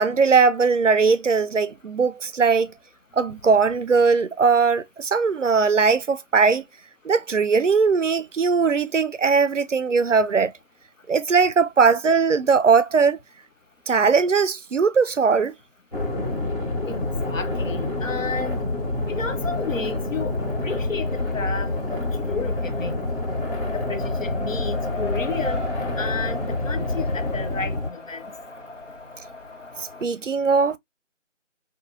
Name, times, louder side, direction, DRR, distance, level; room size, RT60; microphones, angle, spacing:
voice 1, 0.0-2.7 3.2-6.6 7.0-10.5 11.1-13.2 13.9-15.5 30.0-30.8, right 5 dB, 70° right, 0.5 m, -19 dB
sound 1, 15.9-27.9, left 2 dB, 45° left, 1.6 m, -27 dB
voice 2, 16.9-18.6 19.1-20.4 20.6-23.0 23.7-25.6 26.0-28.2, left 4 dB, 85° left, 0.8 m, -32 dB
Race car auto racing, 21.9-30.0, left 2 dB, 65° left, 1.4 m, -38 dB
3.6 x 2.7 x 2.5 m
figure-of-eight pair, 180°, 38 cm